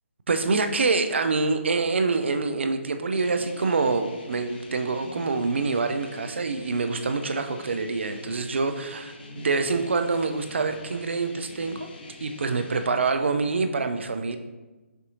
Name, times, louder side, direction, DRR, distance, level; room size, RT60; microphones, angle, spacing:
voice 1, 0.3-11.9 12.2-14.4, right 4 dB, 60° right, 7 dB, 0.4 m, -26 dB
sound 1, 3.1-12.9, left 2 dB, 40° left, 0.6 m, -45 dB
5.8 x 2.7 x 2.5 m, 1.2 s
figure-of-eight pair, 145°, 7 cm